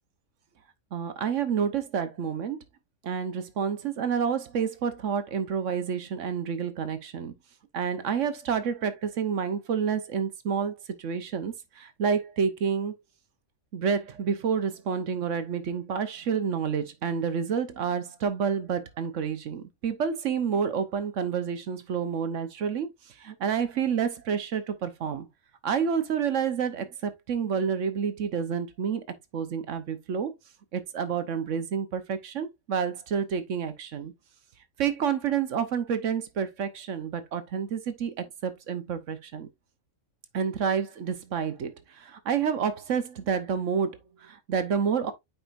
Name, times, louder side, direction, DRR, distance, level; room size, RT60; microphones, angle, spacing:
voice 1, 0.9-2.6 3.0-7.3 7.7-13.0 13.7-22.9 23.2-25.3 25.6-29.0 29.3-30.3 30.7-34.1 34.8-39.5 40.3-45.1, right 7 dB, 65° right, 1.2 m, -29 dB
8.5 x 4.6 x 2.5 m
omnidirectional pair, 1.4 m